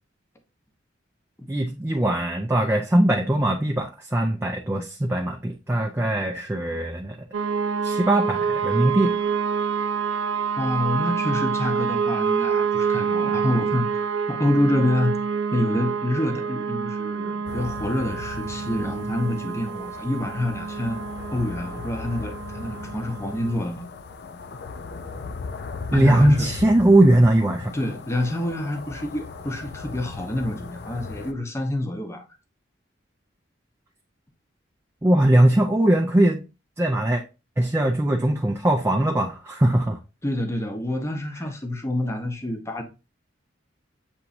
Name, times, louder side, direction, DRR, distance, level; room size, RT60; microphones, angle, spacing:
voice 1, 1.5-7.2 7.8-9.1 25.9-27.7 35.0-36.4 36.8-37.2 37.6-40.0, right 1 dB, 15° right, 0.4 m, -20 dB
sound 1, 7.3-23.5, right 6 dB, 85° right, 0.5 m, -27 dB
voice 2, 10.6-15.2 15.5-21.0 21.3-23.9 25.9-26.5 27.7-32.2 40.2-42.8, left 1 dB, 15° left, 0.7 m, -27 dB
sound 2, 17.5-31.3, left 4 dB, 55° left, 0.5 m, -37 dB
7.0 x 3.0 x 2.6 m
head